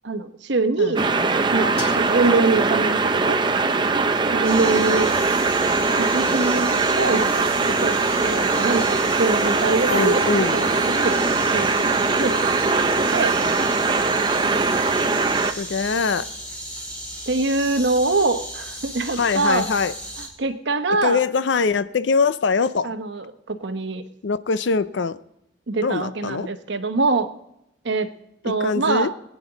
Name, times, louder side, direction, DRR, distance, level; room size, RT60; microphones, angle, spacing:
voice 1, 0.0-1.0 1.5-3.4 4.3-5.1 6.0-10.2 10.5-11.2 11.5-13.4 17.3-19.7 20.2-21.2 22.8-24.0 25.7-27.3 27.8-28.1 28.4-29.1, right 3 dB, 70° right, 9 dB, 0.9 m, -24 dB
voice 2, 0.8-1.4 9.9-10.6 15.6-16.3 19.2-19.9 21.0-22.9 24.2-25.2 25.8-26.5 28.6-29.1, left 5 dB, 70° left, 15 dB, 0.5 m, -23 dB
sound 1, 1.0-15.5, right 3 dB, 25° right, 0.5 m, -21 dB
sound 2, 1.8-4.6, left 1 dB, 30° left, 4.0 m, -41 dB
sound 3, 4.4-20.3, right 1 dB, 5° left, 3.0 m, -35 dB
20.5 x 9.2 x 4.0 m, 0.82 s
head